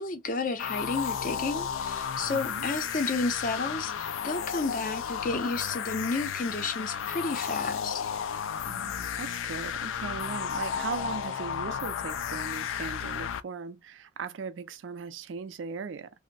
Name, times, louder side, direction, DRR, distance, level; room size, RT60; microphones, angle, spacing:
voice 1, 0.0-8.1, left 3 dB, 45° left, 0.6 m, -31 dB
sound 1, 0.6-13.4, left 8 dB, 90° left, 0.3 m, -33 dB
voice 2, 2.3-2.7 8.6-16.1, right 5 dB, 75° right, 0.4 m, -38 dB
2.6 x 2.0 x 3.8 m
head